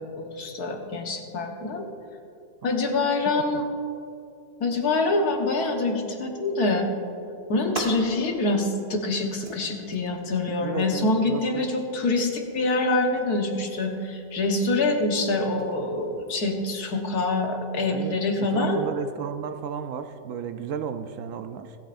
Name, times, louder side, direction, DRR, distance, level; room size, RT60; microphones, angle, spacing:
voice 1, 0.0-1.8 2.6-3.7 4.6-6.9 7.5-18.8, left 2 dB, 85° left, 3 dB, 1.8 m, -25 dB
sound 1, 7.4-17.4, right 2 dB, 35° right, 1.5 m, -44 dB
voice 2, 10.6-11.7 17.9-21.8, right 7 dB, 70° right, 9 dB, 0.8 m, -34 dB
25.0 x 8.8 x 2.5 m, 2.7 s
omnidirectional pair, 1.6 m